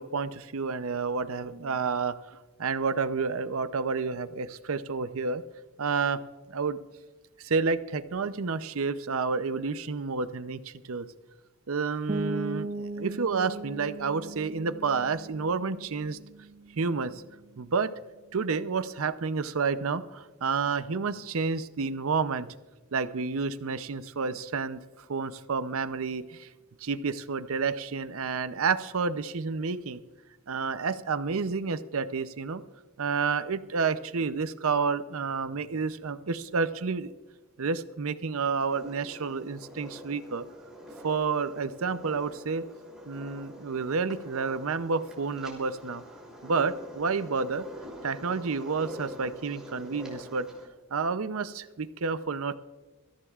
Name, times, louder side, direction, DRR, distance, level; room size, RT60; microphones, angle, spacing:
voice 1, 0.0-5.4 5.8-6.2 6.5-6.8 7.4-11.1 11.7-16.2 16.8-17.2 17.6-17.9 18.3-22.5 22.9-24.8 25.1-26.5 26.8-30.0 30.5-32.6 33.0-37.1 37.6-40.4 41.0-42.7 43.1-46.0 46.4-47.7 48.0-50.5 50.9-52.6, right 5 dB, 65° right, 13 dB, 0.6 m, -30 dB
sound 1, 12.1-17.7, right 2 dB, 30° right, 0.7 m, -38 dB
sound 2, 38.7-50.7, equal, 5° right, 3.0 m, -45 dB
24.5 x 14.5 x 2.4 m, 1.3 s
head